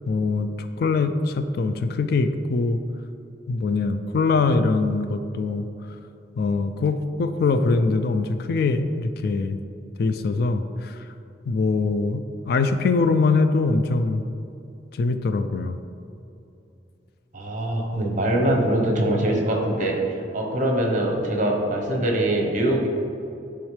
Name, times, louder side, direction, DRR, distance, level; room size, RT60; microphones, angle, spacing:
voice 1, 0.1-2.8 3.5-5.7 6.4-9.6 10.0-11.0 11.5-14.2 14.9-15.8, left 3 dB, 55° left, 10 dB, 0.3 m, -23 dB
voice 2, 17.3-22.9, right 1 dB, 45° right, 1 dB, 1.0 m, -23 dB
10.0 x 3.6 x 3.3 m, 2.7 s
head